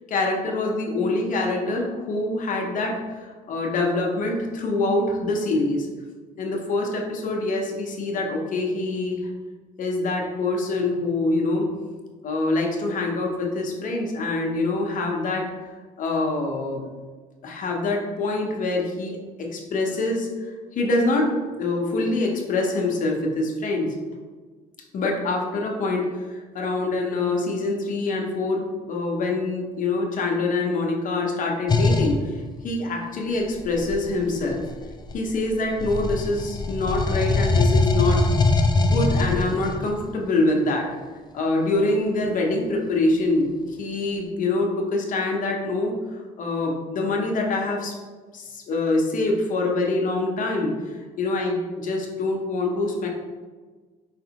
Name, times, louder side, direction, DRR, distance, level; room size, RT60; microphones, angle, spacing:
voice 1, 0.1-5.9 6.4-9.2 9.8-11.7 12.2-15.5 16.0-16.9 17.4-23.9 24.9-34.7 35.1-38.3 38.7-40.9 41.3-47.9 48.3-53.1, left 2 dB, 50° left, 0 dB, 0.9 m, -25 dB
sound 1, 31.7-32.2 33.5-35.4 35.8-39.9, left 2 dB, 25° left, 0.4 m, -22 dB
5.0 x 3.3 x 2.9 m, 1.4 s
cardioid pair, 110°, 17 cm